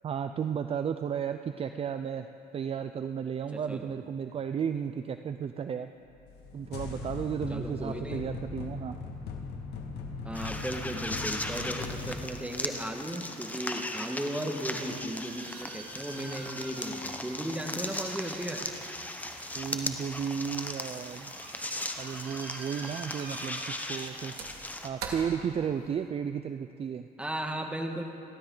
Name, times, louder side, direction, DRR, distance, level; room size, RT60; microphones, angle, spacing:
voice 1, 0.0-2.3 2.5-5.9 6.5-9.0 19.5-21.3 22.0-24.3 24.8-27.1, right 7 dB, 35° right, 9 dB, 0.5 m, -33 dB
voice 2, 3.5-4.0 7.5-8.2 10.3-18.6 27.2-28.0, right 1 dB, 5° right, 3 dB, 1.7 m, -36 dB
sound 1, 6.1-12.2, left 4 dB, 75° left, 2.0 m, -39 dB
sound 2, 10.3-24.9, left 1 dB, 10° left, 1.0 m, -38 dB
sound 3, 14.7-26.1, right 4 dB, 70° right, 2.3 m, -46 dB
29.0 x 12.5 x 4.0 m, 2.6 s
cardioid pair, 110°, 17 cm